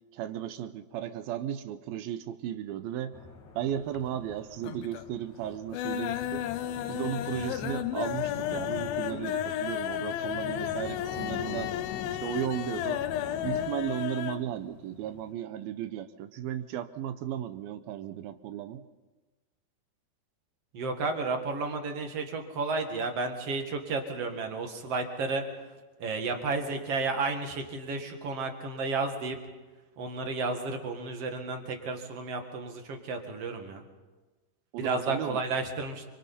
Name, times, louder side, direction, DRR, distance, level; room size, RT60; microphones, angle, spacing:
voice 1, 0.1-3.2 3.6-6.4 6.9-11.7 12.1-13.0 13.4-18.8 34.7-35.4, right 11 dB, 75° right, 11 dB, 2.4 m, -35 dB
sound 1, 3.1-13.7, left 5 dB, 50° left, 3.3 m, -43 dB
sound 2, 3.7-4.3 4.6-5.1 5.4-14.5 14.7-14.8 15.2-15.3, left 11 dB, 75° left, 2.4 m, -33 dB
voice 2, 20.7-25.7 26.0-29.4 30.0-33.8 34.8-36.0, right 3 dB, 45° right, 4 dB, 2.4 m, -32 dB
29.5 x 25.0 x 4.3 m, 1.2 s
omnidirectional pair, 4.7 m